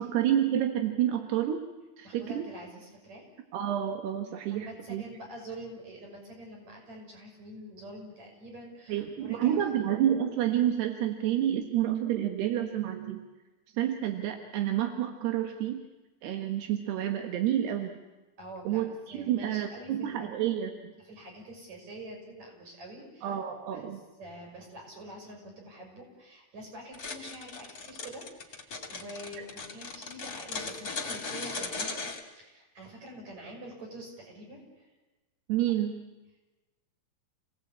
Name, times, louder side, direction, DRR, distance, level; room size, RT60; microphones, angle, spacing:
voice 1, 0.0-1.7 2.0-2.5 3.5-5.0 8.9-13.3 13.8-15.8 16.2-18.0 18.7-20.9 23.2-24.0 35.5-36.0, right 11 dB, 85° right, 5 dB, 3.5 m, -29 dB
voice 2, 2.0-3.4 4.5-9.6 18.4-20.3 21.0-23.4 23.7-23.9 24.2-34.9, right 1 dB, 45° right, 1 dB, 7.1 m, -46 dB
sound 1, 26.9-32.2, left 4 dB, 30° left, 2.0 m, -37 dB
28.5 x 18.0 x 8.6 m, 1.1 s
omnidirectional pair, 4.6 m